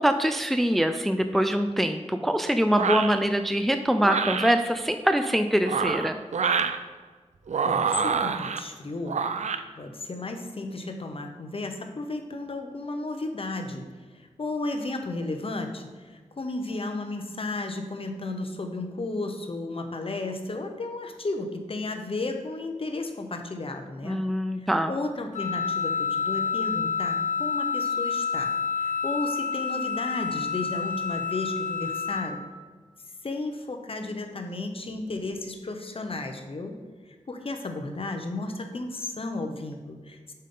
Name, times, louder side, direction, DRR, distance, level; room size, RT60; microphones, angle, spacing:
voice 1, 0.0-6.2 24.0-24.9, equal, ahead, 8 dB, 0.4 m, -24 dB
sound 1, 2.7-3.2 4.0-4.5 5.5-6.8 7.5-8.6 9.1-9.6, right 5 dB, 75° right, 0.4 m, -26 dB
voice 2, 7.6-9.2 9.8-13.8 14.1-24.2 24.6-28.5 28.8-32.4 33.2-36.8 37.1-40.3, left 2 dB, 50° left, 5 dB, 0.9 m, -33 dB
Wind instrument woodwind instrument, 25.3-32.3, left 6 dB, 85° left, 1.2 m, -28 dB
7.3 x 5.5 x 3.8 m, 1.4 s
wide cardioid pair, 65°, 12 cm